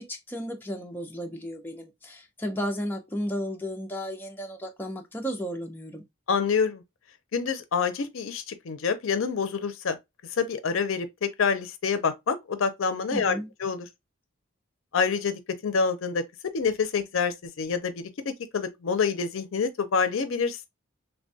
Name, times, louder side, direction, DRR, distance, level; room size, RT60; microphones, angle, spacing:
voice 1, 0.0-6.0 13.1-13.5, equal, 10° left, 0.4 m, -34 dB
voice 2, 6.3-6.8 7.3-10.0 10.4-13.9 14.9-16.2 16.5-20.6, left 5 dB, 75° left, 0.5 m, -27 dB
3.3 x 2.2 x 2.6 m
head